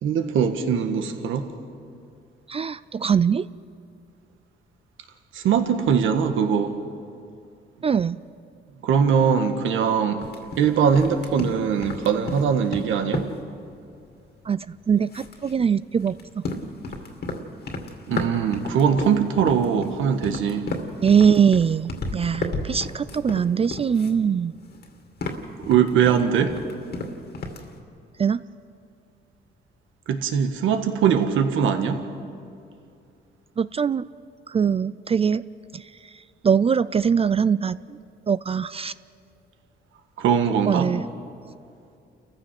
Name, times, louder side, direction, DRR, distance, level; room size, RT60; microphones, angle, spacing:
voice 1, 0.0-1.5 5.3-6.8 8.8-10.2 10.6-13.2 18.1-20.7 25.6-26.5 30.1-32.0 40.2-40.9, right 7 dB, 80° right, 7 dB, 1.5 m, -21 dB
voice 2, 2.5-3.5 7.8-8.2 14.5-16.4 21.0-24.5 28.2-28.4 33.6-34.1 34.5-35.4 35.7-38.0 38.3-38.9 40.7-41.0, right 7 dB, 30° right, 16 dB, 0.4 m, -22 dB
sound 1, 10.2-14.7 15.0-24.2 24.5-27.8, left 3 dB, 55° left, 2.5 m, -34 dB
29.5 x 15.0 x 6.0 m, 2.5 s
cardioid pair, 90°, 20 cm